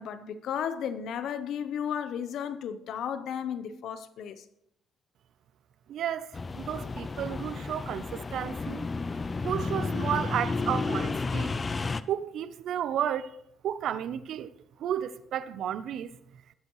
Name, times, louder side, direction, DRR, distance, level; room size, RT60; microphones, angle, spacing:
voice 1, 0.0-4.5, left 8 dB, 75° left, 0.8 m, -34 dB
voice 2, 5.9-8.9 9.4-11.5 12.1-13.3 13.6-14.5 14.8-16.1, right 10 dB, 75° right, 0.6 m, -32 dB
sound 1, 6.3-12.0, left 4 dB, 30° left, 0.5 m, -32 dB
19.5 x 8.1 x 3.1 m
cardioid pair, 90°, 0 cm